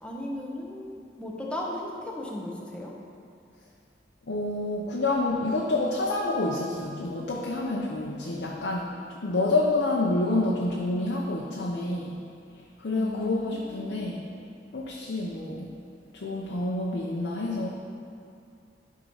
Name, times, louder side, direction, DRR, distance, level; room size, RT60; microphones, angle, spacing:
voice 1, 0.0-2.9 13.0-14.3, left 1 dB, 5° left, -3 dB, 1.0 m, -36 dB
voice 2, 4.3-12.2 12.8-14.2 14.7-15.7 16.1-17.7, left 2 dB, 75° left, -3 dB, 0.8 m, -28 dB
11.5 x 3.8 x 5.5 m, 2.5 s
head